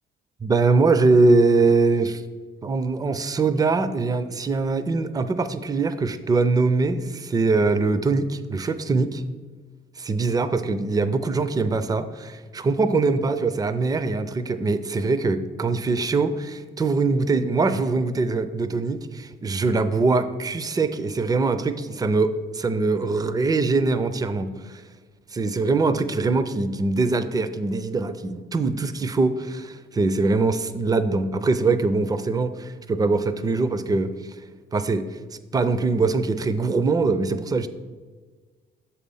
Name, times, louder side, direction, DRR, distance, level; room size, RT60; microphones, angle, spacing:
voice 1, 0.4-2.2 2.6-9.2 10.0-24.8 25.3-34.1 34.7-35.0 35.5-37.7, right 3 dB, 20° right, 11 dB, 0.4 m, -22 dB
6.7 x 4.3 x 5.4 m, 1.4 s
cardioid pair, 90°, 20 cm